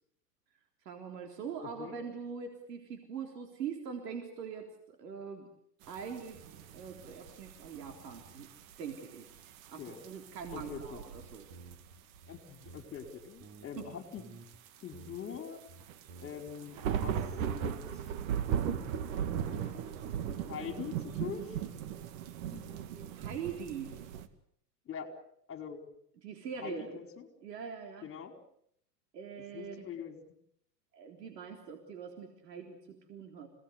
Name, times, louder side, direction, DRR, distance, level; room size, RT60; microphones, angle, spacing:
voice 1, 0.9-5.4 5.9-6.4 6.7-8.5 8.8-9.3 9.7-11.0 11.3-11.5 13.8-13.9 22.9-23.9 26.2-26.9 27.4-28.1 29.1-29.9 30.9-33.5, right 6 dB, 75° right, 4 dB, 3.9 m, -42 dB
sound 1, 5.8-12.2 12.5-13.8 14.5-24.3, right 8 dB, 55° right, 2.2 m, -38 dB
voice 2, 10.5-11.0 12.3-14.2 14.8-15.6 16.2-17.2 17.5-18.0 19.5-19.8 20.5-21.6 22.5-22.7 24.9-25.1 25.5-25.8 26.6-27.3 28.0-28.4 29.5-30.2, left 7 dB, 25° left, 6 dB, 4.5 m, -43 dB
sound 2, 11.1-13.1 13.4-14.6 14.9-15.4 15.7-16.5 16.8-17.7 18.0-19.0, right 4 dB, 40° right, 3.5 m, -53 dB
28.5 x 18.5 x 8.1 m, 0.70 s
hypercardioid pair, 110°, 48 cm